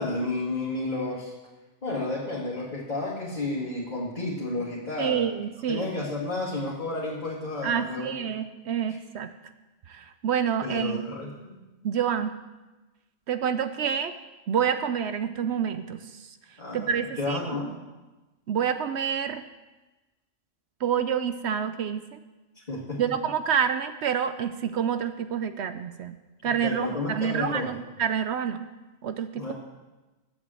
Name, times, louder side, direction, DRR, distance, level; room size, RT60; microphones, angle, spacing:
voice 1, 0.0-1.3 1.8-5.2 5.7-8.2 8.9-9.0 10.6-11.6 16.6-17.7 22.7-23.0 26.4-27.8 29.3-29.5, left 2 dB, 35° left, -6 dB, 2.2 m, -31 dB
voice 2, 5.0-6.0 7.6-9.3 9.9-11.1 11.8-12.4 13.3-14.1 14.5-16.4 16.7-17.4 18.5-19.4 20.8-22.2 23.0-26.2 26.4-28.7 29.0-29.5, right 8 dB, 65° right, 10 dB, 0.8 m, -28 dB
11.0 x 7.6 x 7.6 m, 1.1 s
omnidirectional pair, 1.3 m